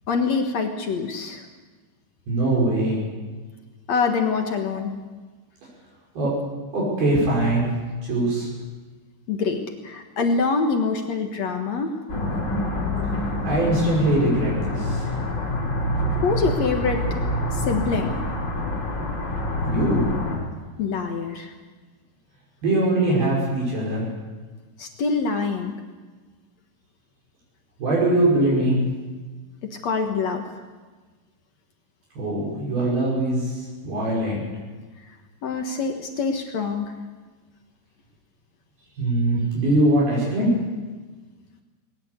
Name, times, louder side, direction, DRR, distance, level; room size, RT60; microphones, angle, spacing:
voice 1, 0.1-1.4 3.9-4.9 9.3-12.0 16.2-17.0 17.5-18.2 20.8-21.5 24.8-25.8 29.8-30.4 35.4-36.9, left 4 dB, 60° left, 4 dB, 1.8 m, -25 dB
voice 2, 2.3-3.0 6.2-6.3 6.7-7.7 8.0-8.5 13.4-15.1 19.7-20.0 22.6-24.1 27.8-28.8 32.2-34.4 39.0-40.5, right 1 dB, 60° right, -5 dB, 7.4 m, -22 dB
sound 1, 12.1-20.4, left 1 dB, 25° left, 4.4 m, -26 dB
20.5 x 19.5 x 8.3 m, 1.3 s
omnidirectional pair, 5.1 m